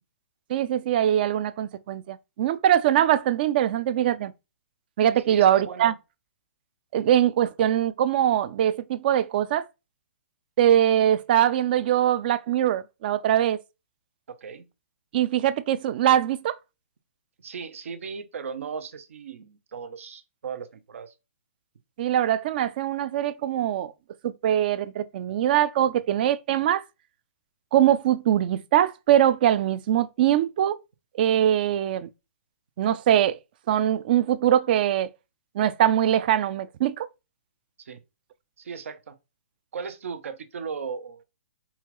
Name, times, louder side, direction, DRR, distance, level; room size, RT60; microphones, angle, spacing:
voice 1, 0.5-4.3 5.0-5.9 6.9-9.6 10.6-13.6 15.1-16.6 22.0-23.9 24.2-26.8 27.7-30.8 31.2-32.1 32.8-33.4 33.7-35.1 35.5-37.1, right 11 dB, 45° right, 0.4 m, -22 dB
voice 2, 5.3-5.9 7.0-7.2 14.3-14.7 17.4-21.1 37.8-38.0 38.6-39.2 39.7-41.2, right 6 dB, 70° right, 0.7 m, -37 dB
5.5 x 2.3 x 3.0 m
hypercardioid pair, 150°, 7 cm